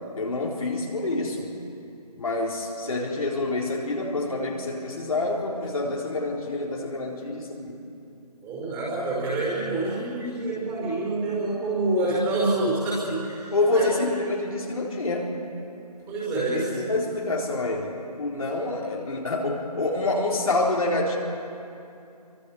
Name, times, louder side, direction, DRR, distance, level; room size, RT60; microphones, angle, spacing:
voice 1, 0.2-1.5 2.2-7.7 13.5-15.4 16.3-21.2, left 2 dB, 60° left, -2 dB, 4.1 m, -27 dB
voice 2, 8.4-13.9 16.1-16.7, right 2 dB, 10° right, -6 dB, 5.0 m, -27 dB
29.5 x 24.5 x 5.0 m, 2.7 s
figure-of-eight pair, 155°, 21 cm